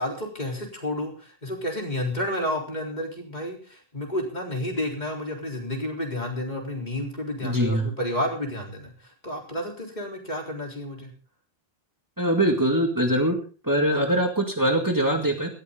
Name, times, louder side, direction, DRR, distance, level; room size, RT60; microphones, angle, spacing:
voice 1, 0.0-8.9 9.2-11.1, left 1 dB, 45° left, 1 dB, 4.1 m, -31 dB
voice 2, 7.4-7.9 12.2-13.4 13.6-15.5, right 1 dB, 20° right, 3 dB, 2.2 m, -22 dB
18.0 x 14.0 x 3.9 m, 0.37 s
omnidirectional pair, 1.0 m